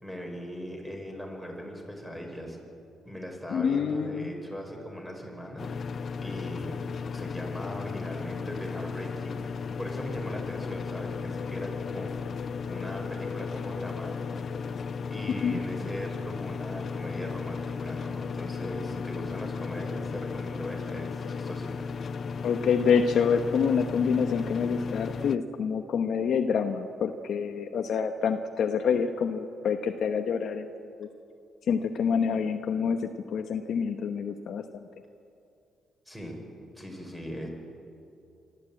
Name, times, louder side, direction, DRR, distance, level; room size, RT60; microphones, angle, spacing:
voice 1, 0.0-2.6 3.0-5.6 5.9-6.8 7.1-14.5 15.1-22.0 36.1-36.4 36.8-37.5, equal, 5° right, 1 dB, 5.4 m, -39 dB
voice 2, 3.5-4.3 15.4-15.6 22.4-31.1 31.6-34.9, left 6 dB, 65° left, 6 dB, 1.0 m, -27 dB
sound 1, 5.6-25.4, left 5 dB, 50° left, 0.7 m, -35 dB
25.5 x 13.0 x 8.7 m, 2.6 s
cardioid pair, 90°, 0 cm